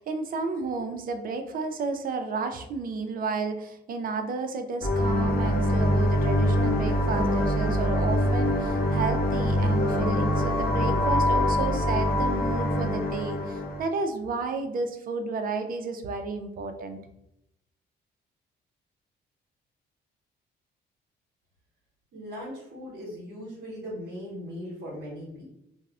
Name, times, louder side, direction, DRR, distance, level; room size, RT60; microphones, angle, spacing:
voice 1, 0.0-17.0, right 4 dB, 45° right, 6 dB, 0.4 m, -32 dB
sound 1, 4.8-13.8, equal, 50° left, 0.6 m, -24 dB
voice 2, 22.1-25.4, equal, 65° right, -6 dB, 1.0 m, -39 dB
2.2 x 2.0 x 3.5 m, 0.80 s
cardioid pair, 90°, 20 cm